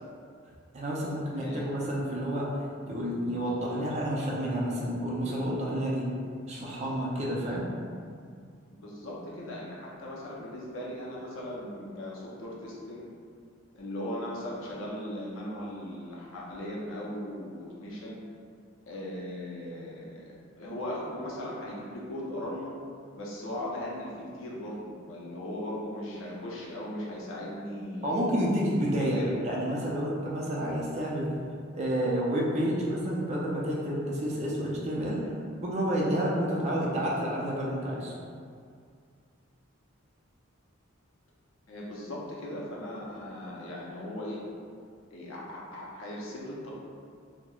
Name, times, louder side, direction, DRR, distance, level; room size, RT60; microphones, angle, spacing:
voice 1, 0.7-2.5 2.8-6.0 6.5-7.6 28.0-31.3 31.7-35.2 35.6-38.1, equal, 35° right, -4 dB, 0.4 m, -29 dB
voice 2, 1.3-1.7 8.7-13.1 13.7-18.2 18.9-20.2 20.6-22.7 23.2-24.1 24.4-28.1 28.7-29.4 41.7-44.4 45.1-46.7, left 1 dB, 70° left, -5 dB, 0.5 m, -38 dB
2.9 x 2.0 x 2.3 m, 2.2 s
head